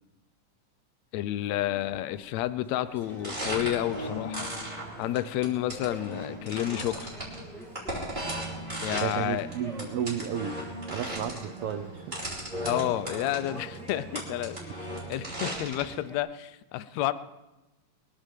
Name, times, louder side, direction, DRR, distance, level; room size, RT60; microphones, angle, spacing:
voice 1, 1.1-4.5 5.0-7.1 8.8-9.5 12.6-14.8 15.1-17.1, left 13 dB, 75° left, 14 dB, 1.8 m, -30 dB
sound 1, 1.5-16.2, equal, ahead, 1.0 m, -48 dB
sound 2, 3.0-16.0, right 1 dB, 15° right, 4.6 m, -37 dB
voice 2, 8.9-10.6 10.9-12.3, right 9 dB, 75° right, 7 dB, 1.3 m, -33 dB
22.5 x 8.6 x 7.6 m, 1.0 s
omnidirectional pair, 3.6 m